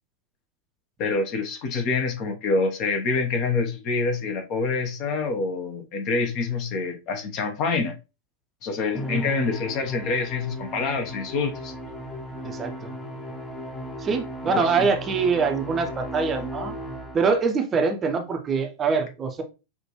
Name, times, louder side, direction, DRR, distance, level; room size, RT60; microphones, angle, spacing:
voice 1, 1.0-7.9 8.6-11.7 14.5-14.9, left 4 dB, 40° left, 4 dB, 0.9 m, -26 dB
Musical instrument, 8.9-17.5, equal, 10° left, 0.9 m, -35 dB
voice 2, 12.4-12.9 14.0-16.7 17.1-19.4, right 5 dB, 25° right, 4 dB, 0.7 m, -24 dB
5.9 x 2.5 x 3.0 m, 0.28 s
figure-of-eight pair, 90°, 0 cm